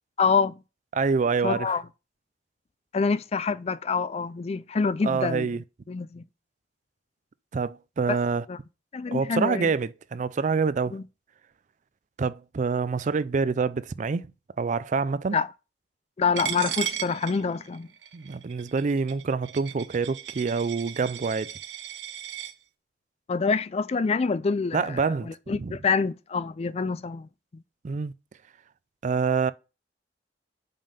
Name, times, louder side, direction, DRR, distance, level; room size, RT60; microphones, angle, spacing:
voice 1, 0.2-0.6 1.4-1.8 2.9-5.5 5.9-6.2 8.1-8.2 8.5-8.6 8.9-9.7 10.9-11.0 15.3-15.5 16.2-17.9 23.3-27.3, left 5 dB, 35° left, 0.4 m, -26 dB
voice 2, 0.9-1.7 5.0-5.6 7.5-8.4 9.1-11.0 12.2-14.3 14.6-15.4 18.1-21.5 24.7-25.7 27.8-28.1 29.0-29.5, right 5 dB, 45° right, 0.4 m, -26 dB
Coin (dropping), 16.4-22.5, right 10 dB, 85° right, 0.8 m, -36 dB
5.4 x 5.3 x 5.6 m
head